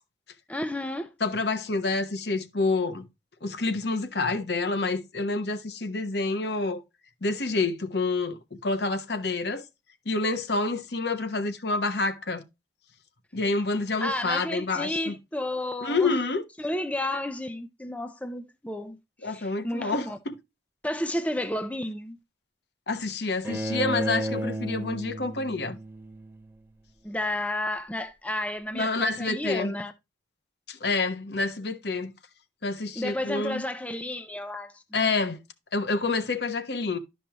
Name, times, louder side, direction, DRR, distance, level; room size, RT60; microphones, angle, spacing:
voice 1, 0.5-1.1 14.0-16.1 16.6-19.0 19.2-20.2 20.8-22.2 27.0-29.9 33.0-35.1, left 1 dB, 10° left, 0.6 m, -32 dB
voice 2, 1.2-3.1 3.4-6.8 7.2-9.6 10.1-12.4 13.3-15.1 15.8-16.4 19.2-20.4 22.9-25.8 28.7-29.7 30.7-32.1 32.6-33.6 34.9-35.4 35.7-37.0, left 3 dB, 65° left, 1.0 m, -28 dB
Bowed string instrument, 23.4-26.5, right 1 dB, 10° right, 1.2 m, -32 dB
11.5 x 5.4 x 2.9 m
head